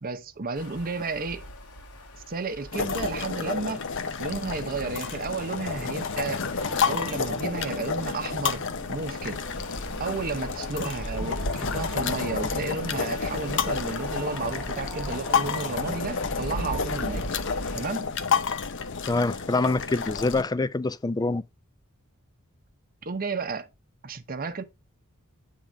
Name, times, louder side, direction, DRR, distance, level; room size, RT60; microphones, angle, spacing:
voice 1, 0.0-1.4 2.3-3.9 4.2-6.4 6.9-8.6 8.9-9.4 10.0-17.3 17.8-18.1 23.0-23.7 24.0-24.6, right 3 dB, 40° right, 0.8 m, -32 dB
sound 1, 0.5-17.9, equal, 90° left, 1.9 m, -40 dB
sound 2, 2.7-20.4, left 5 dB, 60° left, 0.8 m, -30 dB
sound 3, 6.6-16.8, right 1 dB, 15° right, 1.1 m, -42 dB
voice 2, 19.1-21.4, left 3 dB, 20° left, 0.4 m, -25 dB
8.8 x 3.7 x 5.0 m
head